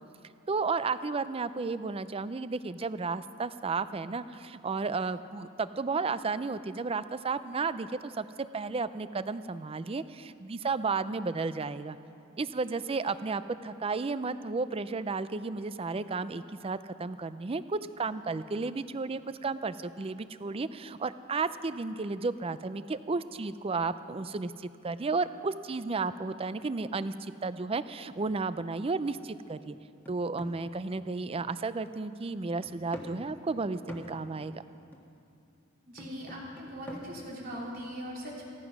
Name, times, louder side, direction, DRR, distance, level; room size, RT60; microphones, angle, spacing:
voice 1, 0.5-8.2 8.5-12.0 12.4-24.5 24.8-27.1 27.4-29.8 30.1-34.6, right 4 dB, 25° right, 14 dB, 0.4 m, -33 dB
sound 1, 28.2-28.5 29.0-29.2 29.7-31.7 32.0-32.1 32.6-34.3 34.9-35.2 36.0-37.0, equal, 10° left, 1.5 m, -47 dB
voice 2, 35.9-38.5, equal, 45° right, -3 dB, 3.3 m, -40 dB
15.5 x 14.5 x 6.0 m, 2.5 s
head